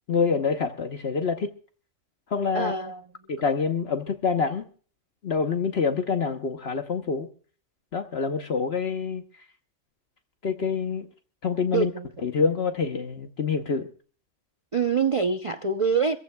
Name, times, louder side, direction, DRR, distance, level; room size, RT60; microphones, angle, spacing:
voice 1, 0.1-1.5 2.3-2.7 3.3-4.6 5.2-7.3 7.9-9.2 10.4-11.1 11.4-11.9 12.2-13.9, left 5 dB, 55° left, 1.2 m, -26 dB
voice 2, 2.5-3.0 11.7-12.1 14.7-16.2, right 5 dB, 35° right, 0.6 m, -25 dB
26.5 x 15.0 x 2.3 m
omnidirectional pair, 1.3 m